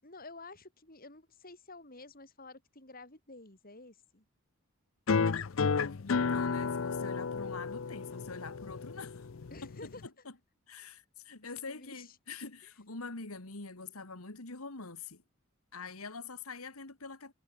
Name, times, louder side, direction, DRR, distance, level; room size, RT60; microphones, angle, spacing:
voice 1, 0.0-4.2 9.5-10.0 11.7-12.2, left 2 dB, 45° left, 6.0 m, -50 dB
sound 1, 5.1-10.1, left 5 dB, 65° left, 0.6 m, -32 dB
voice 2, 5.9-9.3 9.6-9.7 10.7-15.2 15.7-17.3, left 4 dB, 85° left, 2.4 m, -45 dB
head